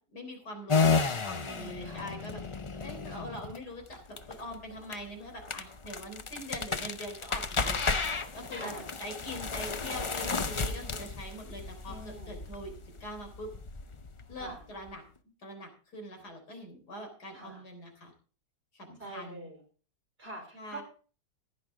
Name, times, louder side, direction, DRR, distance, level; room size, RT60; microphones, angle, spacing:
voice 1, 0.1-7.8 8.3-13.5 14.3-15.0 15.4-18.1 18.7-19.5 20.5-20.8, left 1 dB, 80° left, 4 dB, 4.3 m, -43 dB
sound 1, 0.7-14.9, left 4 dB, 50° left, 0.3 m, -33 dB
voice 2, 1.8-2.1 8.5-8.8 11.9-12.4 14.4-14.6 17.3-17.6 19.0-19.6 20.2-20.8, right 2 dB, 35° right, 3 dB, 4.8 m, -45 dB
15.5 x 10.5 x 3.7 m, 0.39 s
omnidirectional pair, 1.7 m